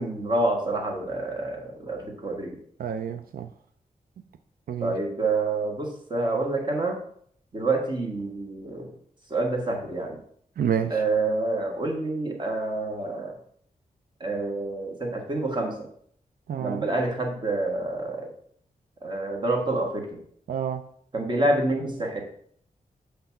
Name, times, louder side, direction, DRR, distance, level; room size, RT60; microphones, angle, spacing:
voice 1, 0.0-2.6 4.8-7.0 7.5-8.9 9.3-10.2 10.9-13.3 14.2-15.8 16.6-18.3 19.0-20.2 21.1-22.2, right 2 dB, 30° right, 1.4 m, -27 dB
voice 2, 2.8-3.5 4.7-5.0 10.6-11.0 16.5-16.8 20.5-20.8, right 8 dB, 80° right, 0.4 m, -28 dB
7.8 x 3.4 x 5.7 m
wide cardioid pair, 175°, 15 cm